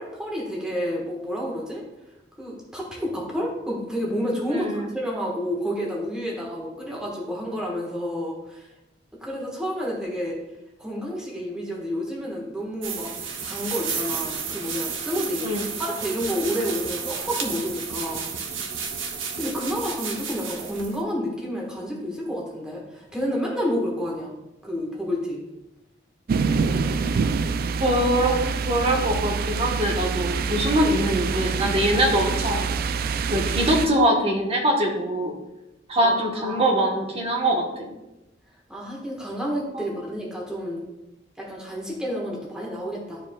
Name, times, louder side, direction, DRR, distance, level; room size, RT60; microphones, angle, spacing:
voice 1, 0.0-1.8 2.4-8.7 9.2-10.4 10.8-13.1 13.4-15.5 15.8-18.3 19.4-24.3 24.6-25.4 36.0-36.8 38.7-40.8 41.4-43.2, equal, 5° right, -3 dB, 1.4 m, -30 dB
voice 2, 4.5-4.9 15.4-15.6 27.8-28.4 28.7-32.7 33.3-35.3 35.9-37.9 39.7-39.9, right 1 dB, 30° right, 0 dB, 1.3 m, -23 dB
sound 1, 12.8-21.0, right 6 dB, 90° right, 0.8 m, -32 dB
sound 2, 26.3-33.9, right 5 dB, 50° right, 0.3 m, -26 dB
11.5 x 4.7 x 2.3 m, 0.95 s
head